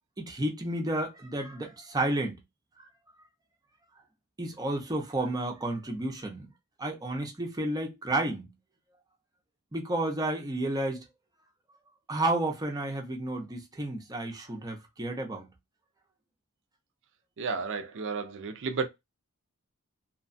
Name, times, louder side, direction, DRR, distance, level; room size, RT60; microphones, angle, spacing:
voice 1, 0.2-2.4 4.4-6.5 6.8-8.5 9.7-11.0 12.1-15.5, right 1 dB, 15° right, 0.6 m, -31 dB
voice 2, 17.4-18.9, right 4 dB, 60° right, 0.5 m, -32 dB
2.8 x 2.2 x 2.5 m
head